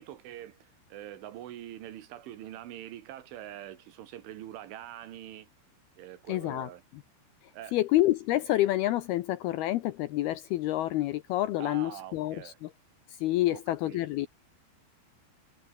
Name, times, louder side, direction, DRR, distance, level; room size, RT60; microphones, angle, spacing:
voice 1, 0.0-5.5 6.0-6.8 7.5-7.8 11.6-12.6 13.5-14.0, right 12 dB, 90° right, 4.4 m, -44 dB
voice 2, 6.3-6.7 7.7-12.7 13.2-14.3, left 15 dB, 80° left, 2.3 m, -28 dB
omnidirectional pair, 5.4 m